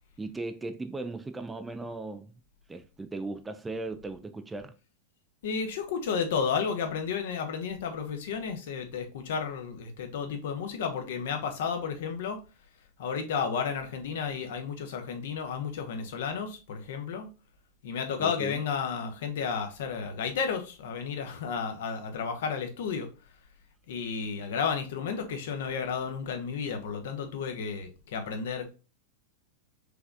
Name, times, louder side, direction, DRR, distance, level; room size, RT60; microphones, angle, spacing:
voice 1, 0.2-2.3 2.7-4.7 18.2-18.6, right 2 dB, 10° right, 0.4 m, -37 dB
voice 2, 5.4-12.4 13.0-17.3 17.8-23.1 23.9-28.7, left 6 dB, 55° left, 0.8 m, -32 dB
4.8 x 3.2 x 2.5 m
figure-of-eight pair, 90°, 0 cm